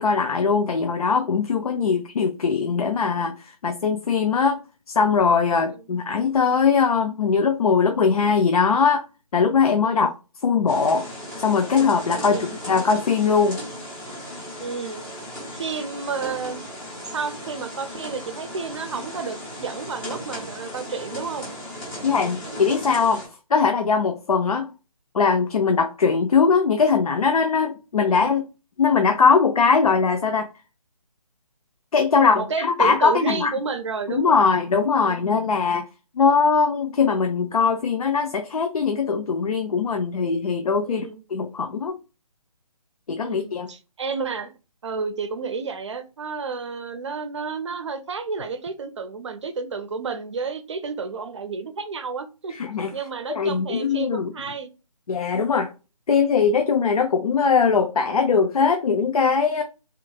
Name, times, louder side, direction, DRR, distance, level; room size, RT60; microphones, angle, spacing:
voice 1, 0.0-4.6 4.9-9.0 9.3-10.1 10.4-11.1 11.4-13.6 22.0-23.2 23.5-24.7 25.1-28.4 28.8-30.5 31.9-33.5 34.1-35.9 36.2-41.1 41.3-42.0 43.1-43.7 52.5-52.9 53.3-54.3 55.1-55.7 56.1-59.6, left 5 dB, 65° left, 0.5 m, -21 dB
sound 1, 10.7-23.3, equal, 5° left, 0.6 m, -36 dB
voice 2, 12.2-12.6 14.6-15.0 15.6-16.7 17.1-21.5 28.0-28.3 32.1-34.4 35.0-35.4 40.9-41.2 43.2-44.5 44.8-52.5 52.9-54.7, right 5 dB, 45° right, 0.6 m, -31 dB
3.5 x 2.9 x 2.3 m
figure-of-eight pair, 150°, 20 cm